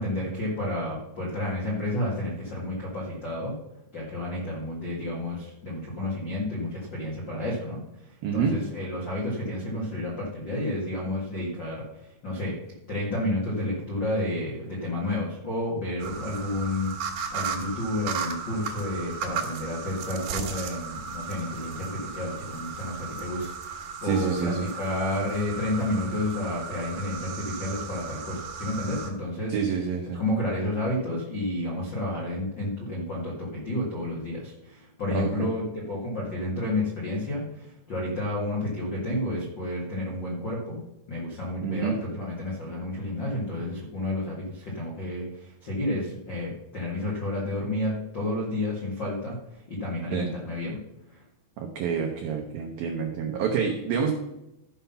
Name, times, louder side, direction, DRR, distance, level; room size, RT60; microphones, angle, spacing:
voice 1, 0.0-3.5 3.9-12.5 12.9-29.6 30.1-40.8 41.1-50.8 51.1-51.2, left 1 dB, 85° left, -4 dB, 1.0 m, -31 dB
voice 2, 8.2-8.6 24.0-24.7 29.5-30.2 35.1-35.5 41.6-42.0 50.1-50.3 51.6-54.1, right 6 dB, 90° right, 2 dB, 2.0 m, -27 dB
sound 1, 16.0-29.1, right 5 dB, 65° right, 2.8 m, -36 dB
13.5 x 5.7 x 5.6 m, 0.90 s
omnidirectional pair, 5.6 m